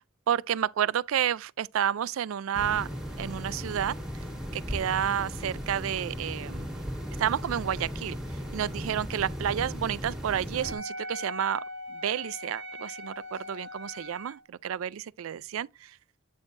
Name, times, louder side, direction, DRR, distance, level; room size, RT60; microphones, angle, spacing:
voice 1, 0.3-2.9 3.2-4.0 4.5-6.7 7.2-8.2 8.5-11.6 11.9-15.9, right 9 dB, 90° right, 0.4 m, -30 dB
sound 1, 2.5-10.8, equal, 5° right, 1.4 m, -36 dB
Wind instrument woodwind instrument, 10.5-14.4, equal, 60° right, 1.0 m, -40 dB
8.5 x 6.3 x 2.5 m
head